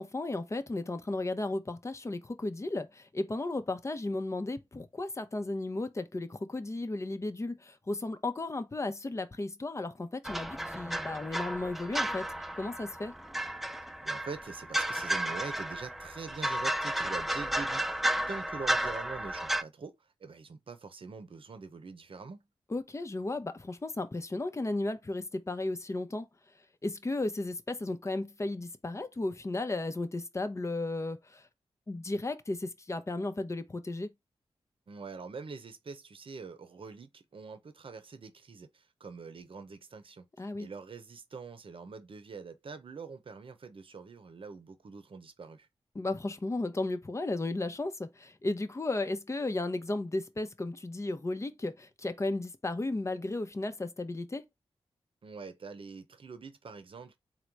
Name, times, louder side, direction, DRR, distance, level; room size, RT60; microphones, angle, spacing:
voice 1, 0.0-12.3 12.5-13.1 22.7-26.3 26.8-31.4 31.9-34.1 40.4-40.7 45.9-54.4, left 2 dB, 25° left, 0.7 m, -34 dB
sound 1, 10.2-19.6, right 1 dB, ahead, 0.4 m, -33 dB
voice 2, 14.0-22.5 34.9-45.7 55.2-57.2, right 4 dB, 55° right, 0.8 m, -44 dB
3.9 x 2.1 x 4.5 m
cardioid pair, 65°, 11 cm